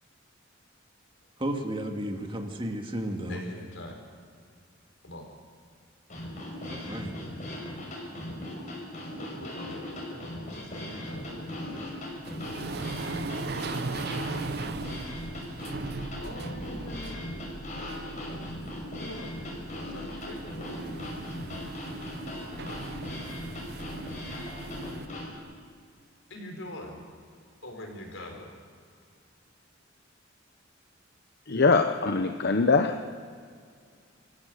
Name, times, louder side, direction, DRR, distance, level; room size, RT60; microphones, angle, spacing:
voice 1, 1.4-3.4 6.6-7.1, right 1 dB, 25° right, 3 dB, 2.1 m, -33 dB
voice 2, 3.3-4.0 5.0-5.3 9.2-12.0 12.6-13.7 16.2-17.4 18.9-21.4 26.3-27.1 27.6-28.5, left 1 dB, 75° left, 2 dB, 4.9 m, -44 dB
sound 1, 6.1-25.4, left 1 dB, 40° left, 5.6 m, -38 dB
sound 2, 11.0-25.1, right 3 dB, 55° right, 0.8 m, -39 dB
voice 3, 31.5-33.0, left 4 dB, 55° left, 6 dB, 0.9 m, -22 dB
26.5 x 15.5 x 6.5 m, 2.2 s
head